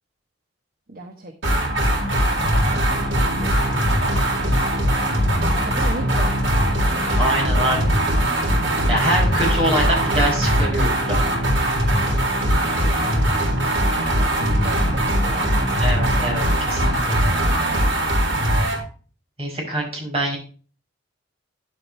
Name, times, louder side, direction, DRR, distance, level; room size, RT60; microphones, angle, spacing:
voice 1, 0.9-1.7 2.4-3.9 5.6-6.8 7.4-8.3 12.9-13.1 14.1-15.4, right 1 dB, 45° right, 3 dB, 1.2 m, -37 dB
sound 1, 1.4-18.8, equal, 65° right, 3.8 m, -20 dB
voice 2, 7.2-7.8 8.9-11.2 15.8-17.2 19.4-20.4, right 1 dB, 30° right, -2 dB, 5.8 m, -24 dB
11.0 x 7.7 x 3.2 m, 0.39 s
head